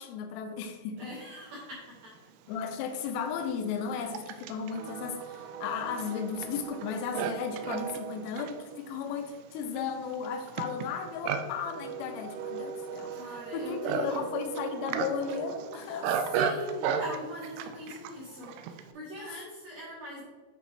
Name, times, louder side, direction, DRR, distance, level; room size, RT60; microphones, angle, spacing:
voice 1, 0.0-1.1 2.5-16.2, left 6 dB, 85° left, 6 dB, 3.4 m, -35 dB
voice 2, 1.0-2.2 3.9-4.4 13.1-14.5 15.8-20.2, equal, 75° right, -5 dB, 2.3 m, -41 dB
Livestock farm animals working animals, 2.2-2.3 3.0-18.9, right 7 dB, 90° right, 2.6 m, -36 dB
10.5 x 4.1 x 3.4 m, 1.4 s
omnidirectional pair, 5.9 m